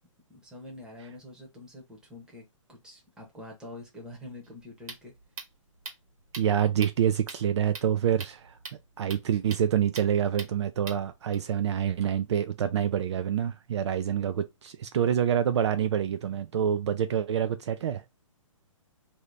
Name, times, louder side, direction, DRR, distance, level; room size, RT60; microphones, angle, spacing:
voice 1, 0.3-5.1, left 2 dB, 5° right, 0.8 m, -46 dB
sound 1, 4.4-11.3, right 4 dB, 90° right, 1.3 m, -45 dB
voice 2, 6.4-8.5 9.0-18.0, right 9 dB, 55° right, 0.4 m, -27 dB
2.7 x 2.7 x 3.2 m
hypercardioid pair, 150°, 17 cm